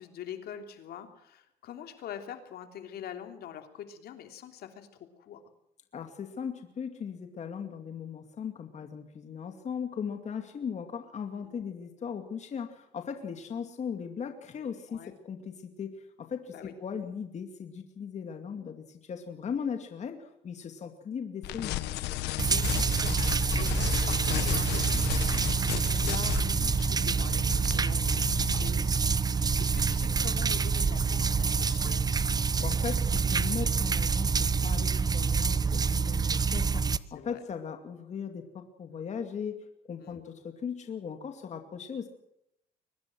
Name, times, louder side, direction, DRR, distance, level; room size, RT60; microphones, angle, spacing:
voice 1, 0.0-4.9 5.2-5.4 14.9-15.1 16.5-16.7 22.4-32.1 37.1-37.4 40.0-40.2, left 9 dB, 70° left, 6 dB, 3.2 m, -44 dB
voice 2, 5.9-21.9 32.6-42.1, left 7 dB, 45° left, 6 dB, 2.5 m, -38 dB
sound 1, 21.4-28.7, left 14 dB, 85° left, 1.4 m, -35 dB
Running Water, 22.4-37.0, right 5 dB, 25° right, 0.8 m, -27 dB
sound 2, 25.5-34.0, right 6 dB, 90° right, 2.8 m, -47 dB
23.5 x 19.5 x 6.2 m, 0.78 s
cardioid pair, 110°, 17 cm